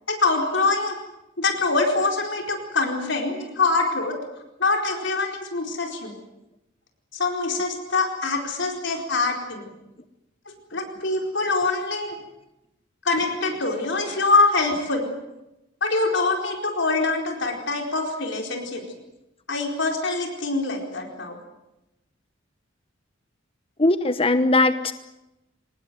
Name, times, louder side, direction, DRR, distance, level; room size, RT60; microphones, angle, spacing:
voice 1, 0.1-1.0 1.4-4.2 4.6-6.1 7.1-9.7 10.5-12.2 13.0-15.1 15.8-18.8 19.5-21.4, left 3 dB, 60° left, 3 dB, 4.4 m, -24 dB
voice 2, 23.8-24.9, left 2 dB, 30° left, 11 dB, 1.0 m, -19 dB
24.5 x 19.5 x 9.3 m, 0.91 s
head